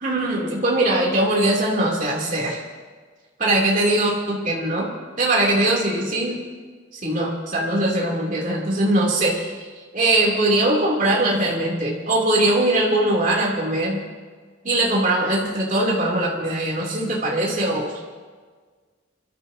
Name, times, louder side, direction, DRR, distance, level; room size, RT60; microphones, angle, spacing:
voice 1, 0.0-2.6 3.4-4.9 5.2-6.4 6.9-9.7 9.9-14.0 14.6-18.0, right 1 dB, 45° right, -3 dB, 3.3 m, -21 dB
27.5 x 13.5 x 2.9 m, 1.5 s
head